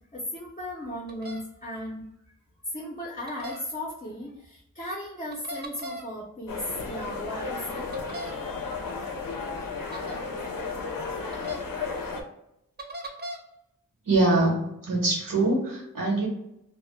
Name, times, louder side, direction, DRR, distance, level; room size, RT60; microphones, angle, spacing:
voice 1, 0.1-2.3 2.6-7.9, left 1 dB, 25° left, -2 dB, 0.4 m, -36 dB
sound 1, 1.1-1.4 3.3-3.6 5.3-6.0 7.9-8.3 9.9-10.2 11.3-11.6 12.8-13.4, equal, 30° right, 0.4 m, -38 dB
sound 2, 6.5-12.2, left 4 dB, 90° left, 0.5 m, -33 dB
voice 2, 14.0-16.3, right 2 dB, 80° right, -3 dB, 0.9 m, -24 dB
2.0 x 2.0 x 3.0 m, 0.81 s
wide cardioid pair, 70°, 33 cm